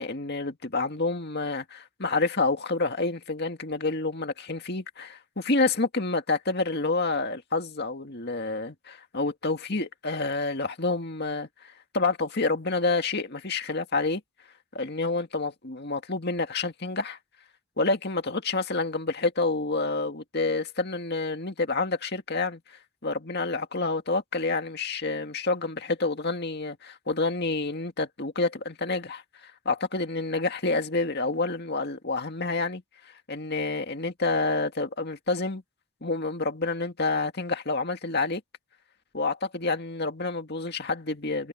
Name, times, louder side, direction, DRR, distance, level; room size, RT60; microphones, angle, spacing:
voice 1, 0.0-14.2 14.7-17.2 17.8-35.6 36.0-38.4 39.1-41.5, left 3 dB, 45° left, 2.1 m, -28 dB
head